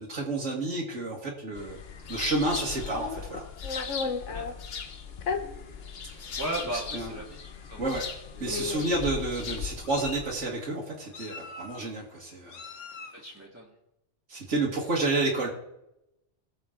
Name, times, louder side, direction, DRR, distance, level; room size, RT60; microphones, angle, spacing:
voice 1, 0.0-1.8 2.1-3.5 4.3-4.4 6.1-6.2 6.7-7.2 7.8-8.1 8.4-12.7 14.3-15.5, right 2 dB, 85° right, -3 dB, 2.1 m, -30 dB
sound 1, 1.6-10.5, left 6 dB, 55° left, 1.1 m, -39 dB
Meow, 2.9-4.5 5.2-5.4 6.3-6.4 6.7-7.0 8.0-8.1 8.5-9.0 9.6-10.3 11.1-11.9 12.5-13.2, left 4 dB, 85° left, 1.3 m, -36 dB
voice 2, 6.4-7.3 7.7-8.0 8.4-8.7 13.1-13.7, right 1 dB, 10° right, -4 dB, 1.9 m, -36 dB
19.5 x 7.1 x 3.8 m, 0.88 s
omnidirectional pair, 1.2 m